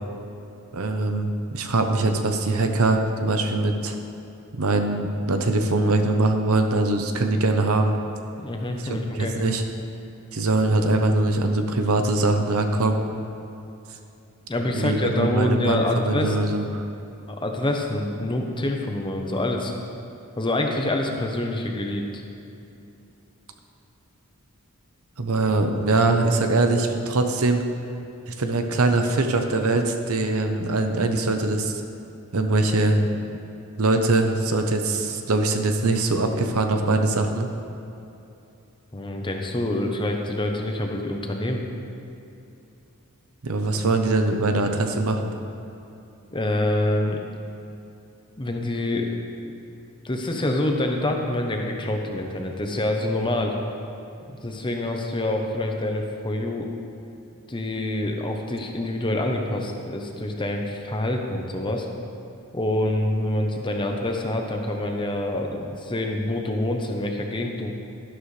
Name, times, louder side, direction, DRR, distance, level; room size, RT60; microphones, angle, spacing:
voice 1, 0.7-4.0 4.5-8.0 8.8-9.6 10.3-13.0 14.7-16.8 25.2-27.6 28.3-31.8 32.3-33.0 33.8-37.5 43.4-45.3, right 2 dB, 70° right, 5 dB, 0.9 m, -22 dB
voice 2, 8.4-9.3 14.5-16.5 17.3-19.7 20.4-22.2 38.9-41.6 46.3-47.2 48.4-49.6 50.0-53.6 54.3-56.7 57.5-61.9 62.5-67.7, left 1 dB, 20° left, 2 dB, 0.9 m, -26 dB
12.0 x 11.5 x 3.3 m, 2.8 s
head